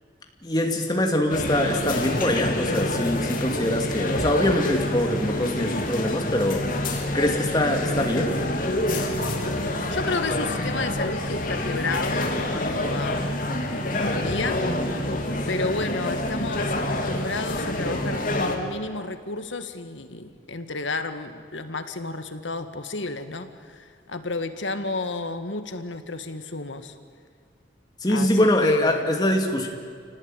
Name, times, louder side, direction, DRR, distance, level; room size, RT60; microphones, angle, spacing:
voice 1, 0.4-6.7 7.1-8.4 28.0-29.7, left 1 dB, 20° left, 3 dB, 2.6 m, -23 dB
sound 1, 1.3-18.6, left 1 dB, 45° left, 2.7 m, -27 dB
voice 2, 9.9-13.5 13.8-14.7 15.5-27.0 28.1-29.1, left 3 dB, 90° left, 9 dB, 1.8 m, -32 dB
28.5 x 18.5 x 9.2 m, 2.1 s
head